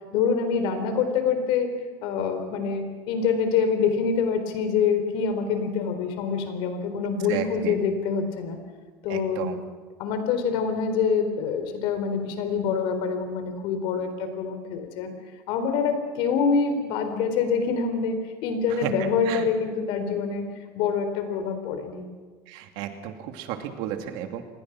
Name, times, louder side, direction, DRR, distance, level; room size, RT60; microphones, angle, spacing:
voice 1, 0.1-1.7 2.0-8.6 9.0-9.5 10.0-15.1 15.5-20.4 20.7-22.1, left 6 dB, 65° left, 8 dB, 4.0 m, -25 dB
voice 2, 7.3-7.8 9.1-9.6 18.7-18.9 19.2-19.4 22.5-24.4, right 11 dB, 70° right, 6 dB, 2.7 m, -33 dB
27.0 x 20.5 x 6.2 m, 1.4 s
cardioid pair, 140°, 9 cm